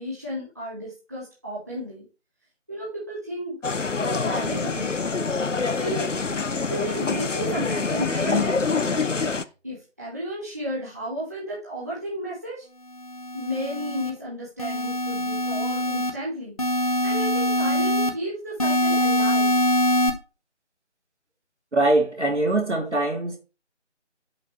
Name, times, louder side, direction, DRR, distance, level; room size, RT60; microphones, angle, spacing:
voice 1, 0.0-2.0 2.7-3.6 4.0-4.9 5.8-12.7 13.3-19.6, equal, 15° right, 1.1 m, -33 dB
sound 1, 3.6-9.4, left 4 dB, 85° left, 0.8 m, -26 dB
sound 2, 13.0-14.1 14.6-16.1 16.6-18.1 18.6-20.1, left 1 dB, 30° left, 1.1 m, -23 dB
voice 2, 21.7-23.4, right 2 dB, 70° right, 2.7 m, -22 dB
11.0 x 5.9 x 3.0 m
figure-of-eight pair, 165°, 36 cm